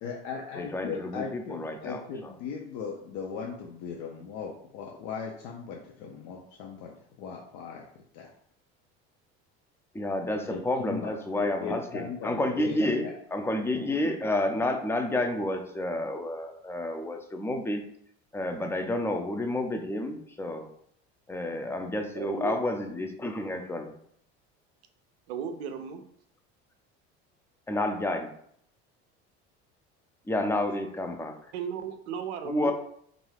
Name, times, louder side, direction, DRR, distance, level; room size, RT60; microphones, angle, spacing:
voice 1, 0.0-7.9 8.1-8.3 10.5-13.1, left 6 dB, 70° left, 0 dB, 0.6 m, -38 dB
voice 2, 0.6-2.3 9.9-13.0 13.3-17.8 18.3-20.7 21.3-23.9 27.7-28.3 30.3-31.3 32.4-32.7, left 1 dB, 10° left, 4 dB, 0.4 m, -30 dB
voice 3, 22.1-22.6 25.3-26.0 31.5-32.7, right 7 dB, 90° right, 8 dB, 0.5 m, -35 dB
2.5 x 2.3 x 3.2 m, 0.66 s
hypercardioid pair, 80°, 32 cm